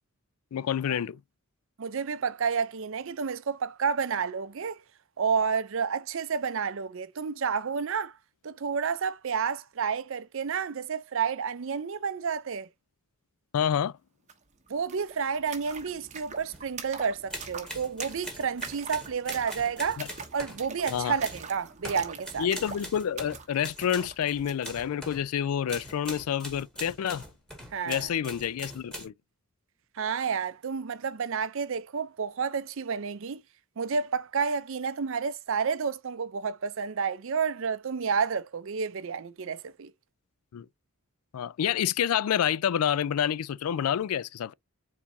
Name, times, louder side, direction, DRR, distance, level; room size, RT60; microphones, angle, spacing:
voice 1, 0.5-1.2 13.5-13.9 20.0-20.1 20.9-21.1 22.4-27.3 27.8-29.1 40.5-40.7 41.3-44.5, left 9 dB, 85° left, 0.4 m, -28 dB
voice 2, 1.8-4.8 5.2-8.1 8.4-12.7 14.7-20.0 20.3-22.5 27.7-28.1 30.0-33.4 33.8-39.9, right 6 dB, 65° right, 0.5 m, -30 dB
sound 1, 14.3-14.4 14.6-24.8, right 5 dB, 35° right, 1.2 m, -44 dB
sound 2, 16.5-16.6 17.3-25.3 25.7-29.1, equal, 5° left, 1.7 m, -42 dB
4.5 x 4.1 x 2.6 m
head